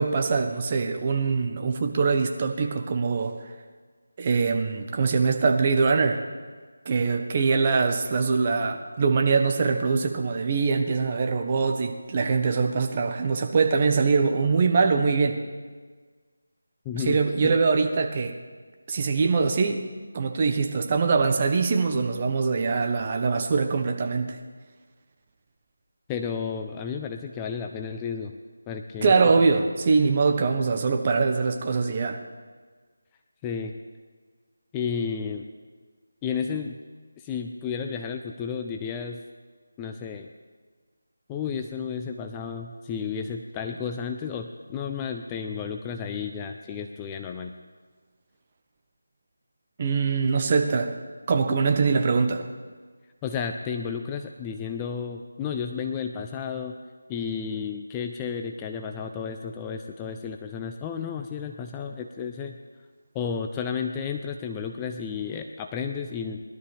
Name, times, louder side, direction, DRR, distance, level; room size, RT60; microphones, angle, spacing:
voice 1, 0.0-3.3 4.2-6.2 6.8-15.4 16.9-18.3 18.9-19.8 20.1-24.4 29.0-32.2 49.8-51.0 51.3-52.4, right 4 dB, 30° right, 5 dB, 1.2 m, -23 dB
voice 2, 16.8-17.6 26.1-28.3 28.7-29.1 33.4-33.7 34.7-35.5 36.2-36.8 37.2-39.2 39.8-40.3 41.3-47.5 53.2-56.8 57.1-62.6 63.1-66.4, left 6 dB, 15° left, 4 dB, 0.5 m, -32 dB
20.5 x 12.5 x 3.5 m, 1.5 s
figure-of-eight pair, 165°, 0 cm